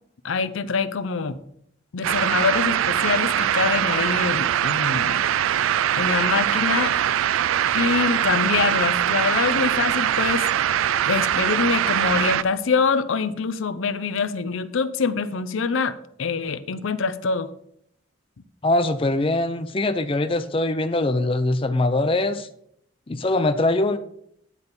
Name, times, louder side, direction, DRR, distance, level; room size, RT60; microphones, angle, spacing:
voice 1, 0.2-1.4 1.9-5.3 5.9-6.9 7.7-10.5 11.1-15.9 16.2-17.5, left 5 dB, 80° left, 13 dB, 0.6 m, -24 dB
sound 1, 2.0-12.4, right 10 dB, 85° right, 0.3 m, -22 dB
voice 2, 18.6-22.5 23.1-24.0, left 2 dB, 25° left, 9 dB, 0.5 m, -22 dB
9.8 x 4.1 x 6.9 m, 0.71 s
head